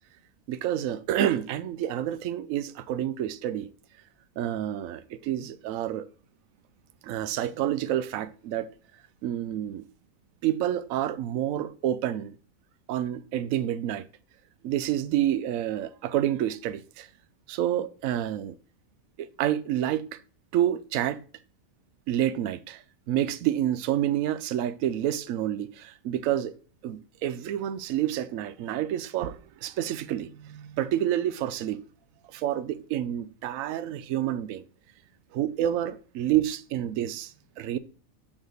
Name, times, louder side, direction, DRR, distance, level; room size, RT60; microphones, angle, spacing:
voice 1, 0.5-3.7 4.4-6.1 7.0-8.7 9.2-9.8 10.4-12.4 12.9-14.0 14.6-17.1 17.5-18.6 19.2-20.2 20.5-21.2 22.1-26.5 26.8-31.8 32.3-34.6 35.3-37.8, right 11 dB, 75° right, 1.0 m, -28 dB
7.2 x 3.7 x 6.3 m
omnidirectional pair, 1.4 m